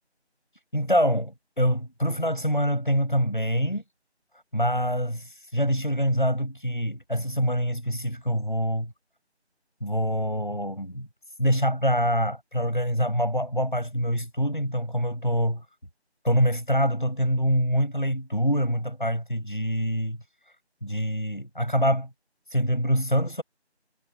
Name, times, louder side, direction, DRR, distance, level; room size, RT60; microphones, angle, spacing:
voice 1, 0.7-3.8 4.5-8.9 9.8-11.1 11.4-15.7 16.2-20.2 20.8-22.1 22.5-23.4, equal, 45° left, 7.6 m, -25 dB
figure-of-eight pair, 180°, 33 cm